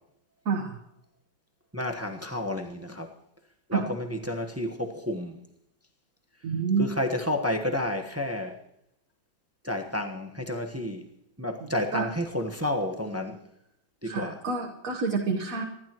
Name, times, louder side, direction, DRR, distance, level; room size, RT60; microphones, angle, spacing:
voice 1, 0.4-0.8 3.7-3.9 6.4-6.9 11.6-12.1 14.0-15.6, right 5 dB, 45° right, 1 dB, 1.5 m, -28 dB
voice 2, 1.7-3.1 3.7-5.4 6.8-8.6 9.6-11.1 11.4-13.4 14.0-14.4, left 1 dB, 10° right, 4 dB, 0.7 m, -30 dB
26.5 x 12.0 x 3.0 m, 0.81 s
omnidirectional pair, 2.2 m